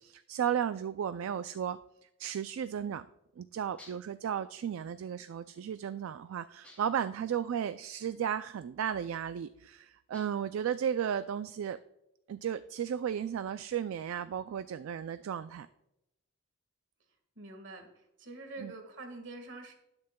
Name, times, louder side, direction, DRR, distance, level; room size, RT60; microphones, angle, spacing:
voice 1, 0.0-3.1 3.4-11.8 12.3-15.7 18.6-18.7, right 8 dB, 75° right, 12 dB, 0.3 m, -34 dB
sound 1, 3.8-4.2 6.6-7.1 10.1-10.6, left 1 dB, 5° left, 2.8 m, -56 dB
voice 2, 17.3-19.7, right 2 dB, 60° right, 5 dB, 1.6 m, -46 dB
19.0 x 6.7 x 2.2 m, 0.86 s
head